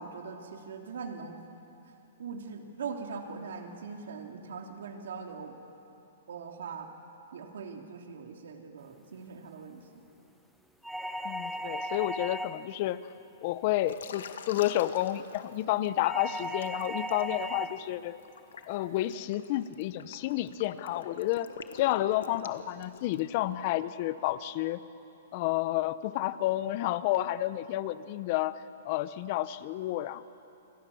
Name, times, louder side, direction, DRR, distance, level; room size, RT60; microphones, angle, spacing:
voice 1, 0.0-1.4 2.2-5.6 6.3-6.9 7.3-9.8, right 5 dB, 75° right, 3 dB, 2.9 m, -41 dB
sound 1, 10.8-12.8 16.0-17.8, equal, ahead, 0.6 m, -36 dB
voice 2, 11.2-13.0 13.4-18.2 18.7-21.5 21.7-24.8 25.3-30.3, left 14 dB, 40° left, 15 dB, 0.8 m, -30 dB
Liquid, 13.9-15.9 16.4-23.3, left 7 dB, 80° left, 1.8 m, -46 dB
28.5 x 22.0 x 7.1 m, 2.8 s
hypercardioid pair, 160°, 0 cm